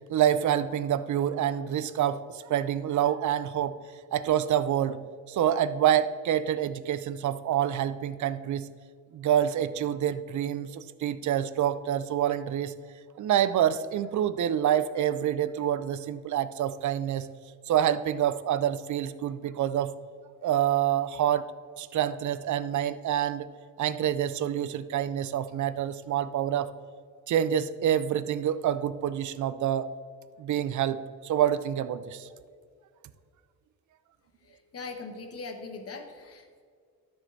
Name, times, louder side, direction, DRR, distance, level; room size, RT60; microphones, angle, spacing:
voice 1, 0.1-3.7 4.1-5.0 5.3-8.7 9.1-12.7 13.2-17.3 17.7-19.9 20.4-21.4 21.8-23.5 23.8-26.7 27.3-29.9 30.4-31.0 31.2-32.3, right 10 dB, 55° right, 13 dB, 0.6 m, -27 dB
voice 2, 34.4-36.6, left 3 dB, 40° left, 4 dB, 1.2 m, -41 dB
12.5 x 6.8 x 2.7 m, 2.1 s
cardioid pair, 95°, 36 cm